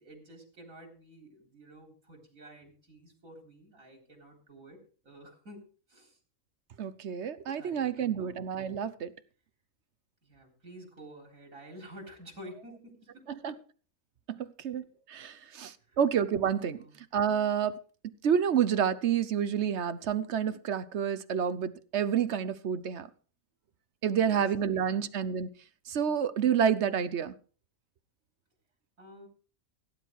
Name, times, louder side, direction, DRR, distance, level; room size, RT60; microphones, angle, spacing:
voice 1, 0.0-5.6 5.9-6.2 7.6-8.4 10.2-13.6 15.4-15.6 15.9-16.0 16.7-16.9 24.2-25.0 29.0-29.3, right 1 dB, 90° right, 4.3 m, -51 dB
voice 2, 6.8-9.1 13.3-13.5 14.3-14.4 14.6-14.8 15.1-16.8 17.1-17.7 18.2-23.1 24.0-25.5 25.9-27.3, right 8 dB, 60° right, 1.1 m, -29 dB
17.0 x 10.0 x 4.7 m
omnidirectional pair, 1.4 m